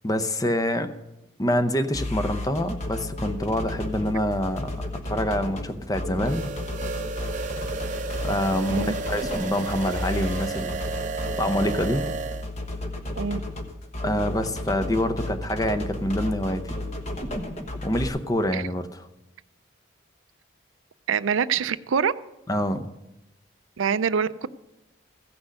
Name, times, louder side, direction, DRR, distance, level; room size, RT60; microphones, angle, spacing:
voice 1, 0.0-0.9 1.4-6.5 8.2-10.8 11.4-12.0 14.0-16.7 17.8-19.0 22.5-22.9, left 1 dB, 20° left, 9 dB, 0.7 m, -26 dB
sound 1, 1.9-18.1, left 1 dB, 35° left, 1.2 m, -33 dB
sound 2, 6.2-12.5, right 4 dB, 40° right, 0.7 m, -33 dB
voice 2, 21.1-22.1 23.8-24.5, right 6 dB, 85° right, 15 dB, 0.5 m, -25 dB
15.5 x 6.1 x 6.4 m, 0.93 s
head